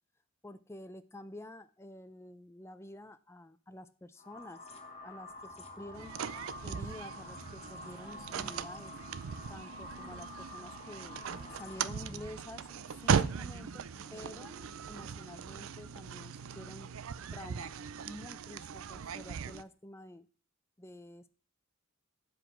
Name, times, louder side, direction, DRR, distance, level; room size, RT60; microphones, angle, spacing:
voice 1, 0.4-4.6 5.0-6.1 6.6-8.9 9.5-12.7 13.0-13.8 14.1-14.5 14.9-16.9 17.3-17.7 18.0-20.3 20.8-21.3, left 1 dB, 15° left, 11 dB, 0.4 m, -49 dB
sound 1, 4.2-12.2, left 2 dB, 30° left, 1.2 m, -48 dB
sound 2, 5.3-16.1, equal, 5° right, 1.2 m, -57 dB
sound 3, 5.9-19.6, right 6 dB, 85° right, 0.5 m, -38 dB
9.6 x 5.1 x 5.9 m, 0.41 s
head